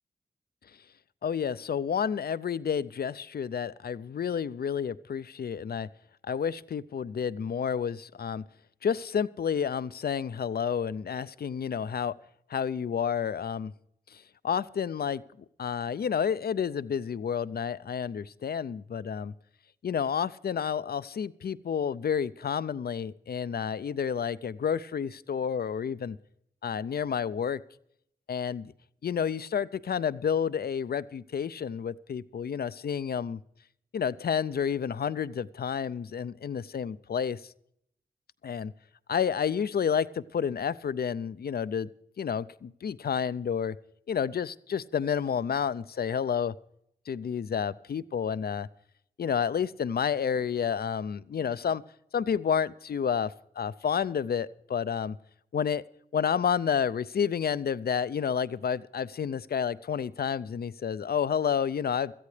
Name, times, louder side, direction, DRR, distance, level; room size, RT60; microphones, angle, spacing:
voice 1, 1.2-5.9 6.2-8.4 8.8-12.1 12.5-13.7 14.1-15.2 15.6-19.3 19.8-26.2 26.6-27.6 28.3-28.7 29.0-33.4 33.9-37.4 38.4-38.7 39.1-41.9 42.2-43.8 44.1-46.5 47.1-48.7 49.2-51.8 52.1-55.2 55.5-55.8 56.1-62.1, left 7 dB, 65° left, 17 dB, 0.5 m, -30 dB
18.0 x 13.5 x 3.3 m, 0.73 s
cardioid pair, 40°, 18 cm